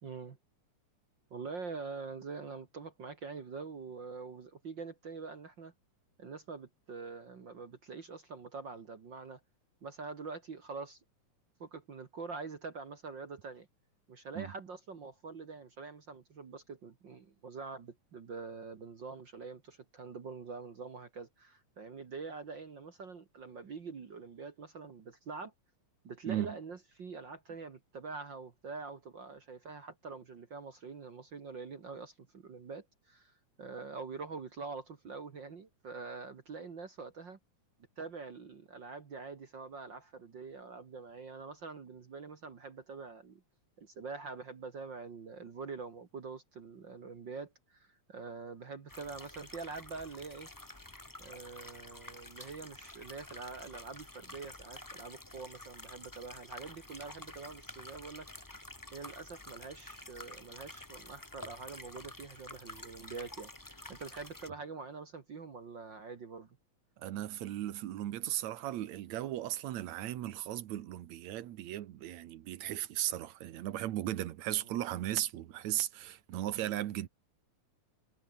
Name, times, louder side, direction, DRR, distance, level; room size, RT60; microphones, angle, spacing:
voice 1, 0.0-0.4 1.3-5.7 6.2-9.4 9.8-11.0 11.6-13.7 14.1-25.5 26.0-33.3 33.6-37.4 38.0-43.4 43.8-50.5 51.2-58.3 58.9-66.6, right 4 dB, 40° right, 2.1 m, -45 dB
voice 2, 26.3-26.6 67.0-77.1, right 13 dB, 70° right, 2.4 m, -36 dB
sound 1, 48.9-64.5, left 1 dB, 10° left, 0.9 m, -50 dB
omnidirectional pair, 3.5 m